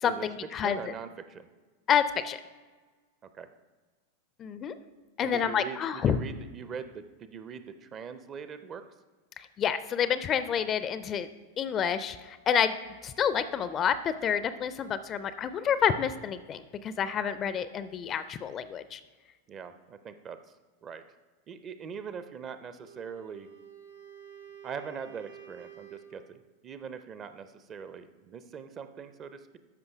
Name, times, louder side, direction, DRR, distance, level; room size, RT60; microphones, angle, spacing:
voice 1, 0.0-0.8 1.9-2.4 4.4-4.8 5.2-6.2 9.4-11.3 11.6-12.7 13.0-19.0, left 8 dB, 30° left, 13 dB, 0.4 m, -28 dB
voice 2, 0.5-1.5 3.3-3.5 5.2-8.9 19.5-20.4 20.8-21.1 21.5-23.5 24.6-29.6, right 6 dB, 30° right, 11 dB, 0.5 m, -42 dB
Wind instrument woodwind instrument, 22.8-26.3, right 9 dB, 70° right, 1.1 m, -50 dB
13.5 x 5.4 x 3.4 m, 1.3 s
figure-of-eight pair, 90°, 0 cm